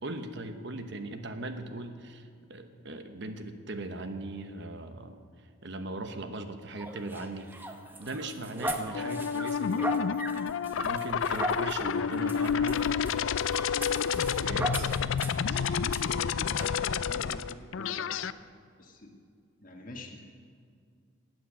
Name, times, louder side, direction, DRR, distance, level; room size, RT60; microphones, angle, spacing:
voice 1, 0.0-5.2 5.6-9.9 10.8-12.9 14.4-14.9 15.5-15.8, right 2 dB, 60° right, 7 dB, 1.1 m, -39 dB
sound 1, 6.8-15.5 15.9-16.0 16.6-16.8, right 1 dB, 10° right, 0.8 m, -38 dB
sound 2, 8.9-18.3, left 7 dB, 75° left, 0.4 m, -29 dB
voice 2, 16.5-18.1 18.8-19.1 19.6-20.3, left 1 dB, 40° left, 1 dB, 1.5 m, -46 dB
13.0 x 9.3 x 8.6 m, 2.2 s
head